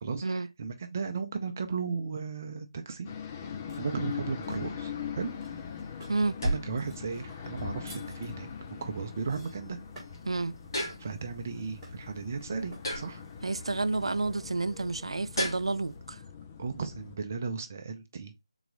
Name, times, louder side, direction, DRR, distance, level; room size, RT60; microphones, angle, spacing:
voice 1, 0.0-3.1 3.4-3.5 3.8-5.3 6.4-8.5 8.8-9.8 11.0-13.2 16.6-18.3, right 5 dB, 25° right, 0.6 m, -35 dB
sound 1, 3.0-17.2, left 7 dB, 15° left, 0.3 m, -42 dB
sound 2, 3.7-4.6 5.4-6.2 6.8-10.3 10.9-11.1 11.8-12.2 12.7-12.9, right 1 dB, 5° right, 1.8 m, -53 dB
sound 3, 5.2-16.0, equal, 45° left, 1.9 m, -39 dB
voice 2, 10.3-10.6 13.4-16.2, right 3 dB, 70° right, 0.4 m, -30 dB
3.9 x 2.9 x 3.6 m
figure-of-eight pair, 170°, 3 cm